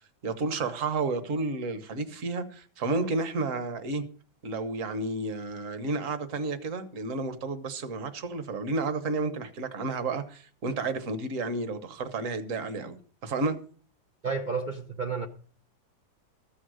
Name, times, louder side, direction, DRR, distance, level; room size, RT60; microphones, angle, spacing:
voice 1, 0.2-4.0 4.4-13.0 13.2-13.6, right 3 dB, 50° right, 1.3 m, -31 dB
voice 2, 14.2-15.3, right 5 dB, 70° right, 0.4 m, -31 dB
14.0 x 6.4 x 6.3 m
omnidirectional pair, 2.1 m